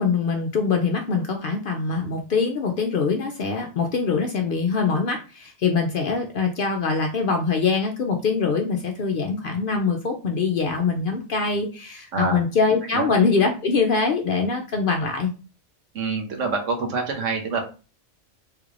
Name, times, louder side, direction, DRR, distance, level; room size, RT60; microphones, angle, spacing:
voice 1, 0.0-15.3, left 4 dB, 60° left, 2 dB, 0.6 m, -23 dB
voice 2, 15.9-17.6, right 4 dB, 80° right, 2 dB, 1.2 m, -26 dB
3.3 x 3.1 x 2.4 m, 0.34 s
omnidirectional pair, 1.3 m